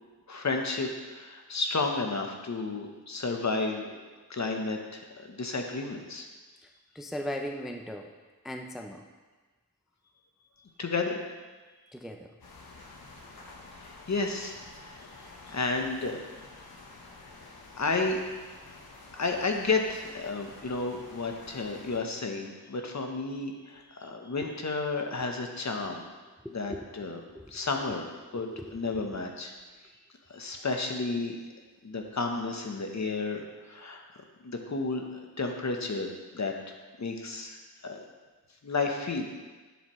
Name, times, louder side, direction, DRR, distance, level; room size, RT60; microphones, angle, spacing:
voice 1, 0.3-4.0 4.3-6.3 10.8-11.2 13.8-16.2 17.8-18.2 19.2-26.0 26.5-27.2 27.5-29.5 30.3-31.4 31.8-34.0 34.4-36.5 37.0-37.6 37.8-38.0 38.6-39.3, left 3 dB, 50° left, 3 dB, 1.0 m, -32 dB
voice 2, 7.0-8.1 8.4-9.0 11.9-12.3 26.4-27.1 27.3-27.5 28.3-28.7, equal, ahead, 3 dB, 0.5 m, -38 dB
sound 1, 12.4-22.0, left 2 dB, 90° left, 1.2 m, -50 dB
11.0 x 7.2 x 3.2 m, 1.3 s
wide cardioid pair, 115°, 36 cm